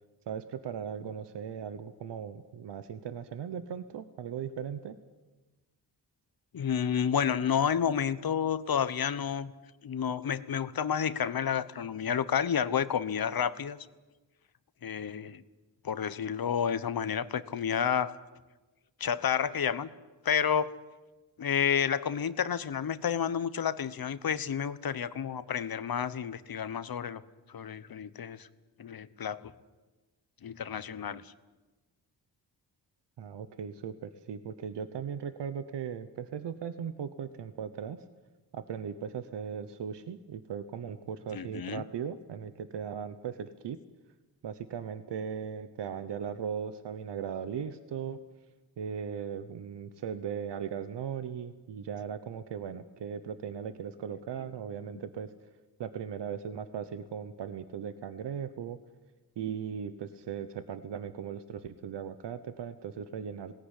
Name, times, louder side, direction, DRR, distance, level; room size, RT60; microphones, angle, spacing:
voice 1, 0.3-4.9 33.2-38.0 38.5-43.8 44.4-48.2 48.8-55.3 55.8-58.8 59.4-63.6, right 7 dB, 90° right, 11 dB, 1.1 m, -38 dB
voice 2, 6.5-9.5 9.8-13.8 14.8-15.4 15.8-18.2 19.0-19.9 20.2-20.8 21.4-27.2 27.5-28.5 28.8-29.5 30.4-31.3 41.3-41.8, left 8 dB, 60° left, 15 dB, 1.1 m, -30 dB
20.5 x 18.0 x 10.0 m, 1.2 s
cardioid pair, 85°, 41 cm